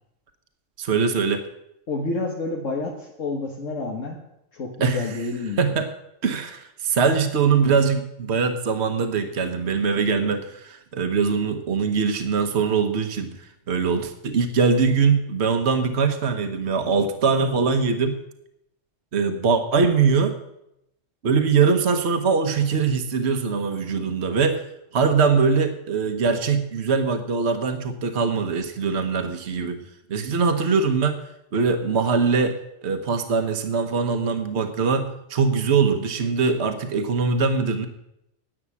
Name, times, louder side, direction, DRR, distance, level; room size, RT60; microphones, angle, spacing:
voice 1, 0.8-1.4 4.8-5.1 5.6-5.9 6.2-18.2 19.1-20.4 21.2-24.6 24.9-29.8 30.1-31.2 31.5-32.5 32.8-37.9, right 5 dB, 60° right, 7 dB, 1.4 m, -22 dB
voice 2, 1.9-4.2 4.5-5.6, left 3 dB, 80° left, -1 dB, 1.8 m, -29 dB
11.0 x 8.7 x 8.4 m, 0.81 s
omnidirectional pair, 1.3 m